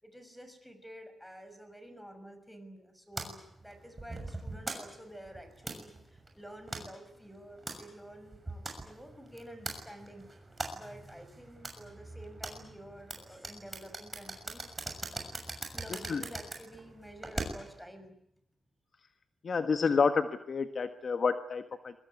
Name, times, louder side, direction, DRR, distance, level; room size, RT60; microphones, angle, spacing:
voice 1, 0.0-10.3 10.7-14.7 15.7-18.1, right 1 dB, 5° left, 9 dB, 6.0 m, -50 dB
sound 1, 3.2-17.8, right 2 dB, 20° right, 6.6 m, -42 dB
voice 2, 19.4-21.9, left 5 dB, 50° left, 9 dB, 1.4 m, -29 dB
23.0 x 22.0 x 9.7 m, 0.75 s
cardioid pair, 100°, 0 cm